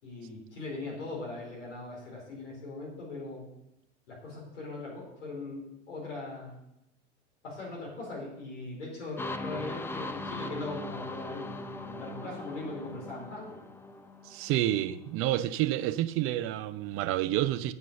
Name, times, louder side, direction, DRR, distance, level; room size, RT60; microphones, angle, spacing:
voice 1, 0.0-3.4 4.1-6.6 7.4-13.6, left 2 dB, 75° left, 4.3 m, -40 dB
sound 1, 9.2-14.9, left 2 dB, 5° left, 0.5 m, -40 dB
voice 2, 14.2-17.7, right 14 dB, 35° right, 0.7 m, -29 dB
8.2 x 6.1 x 6.9 m
hypercardioid pair, 95°, 36 cm